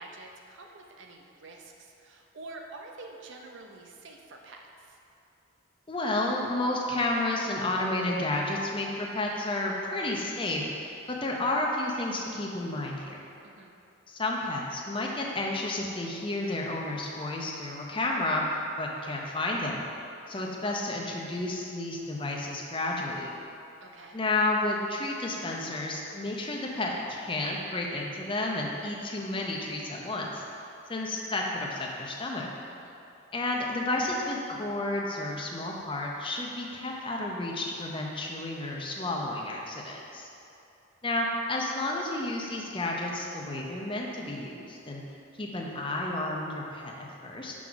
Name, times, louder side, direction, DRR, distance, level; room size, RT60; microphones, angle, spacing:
voice 1, 0.0-5.0 13.4-13.8 23.8-24.2 32.7-33.0, right 2 dB, 65° right, 2 dB, 0.6 m, -47 dB
voice 2, 5.9-13.2 14.1-18.4 18.8-19.9 20.3-23.4 24.1-30.4 30.9-32.5 33.3-40.3 41.0-45.0 45.4-47.5, left 2 dB, 25° left, -1 dB, 0.6 m, -31 dB
6.1 x 4.7 x 3.9 m, 2.7 s
head